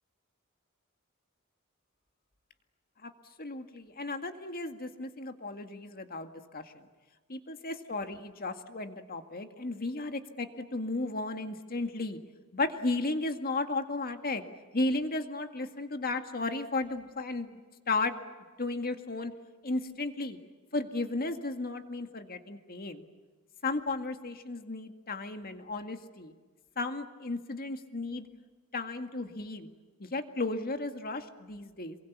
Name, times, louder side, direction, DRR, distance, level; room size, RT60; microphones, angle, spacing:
voice 1, 3.4-6.9 7.3-12.2 12.5-14.4 14.7-17.6 17.9-18.1 18.6-19.3 19.6-20.4 20.7-23.0 23.6-26.3 26.8-28.3 28.7-29.7 30.0-32.0, left 2 dB, 45° left, 7 dB, 2.0 m, -34 dB
27.5 x 23.0 x 8.4 m, 1.3 s
head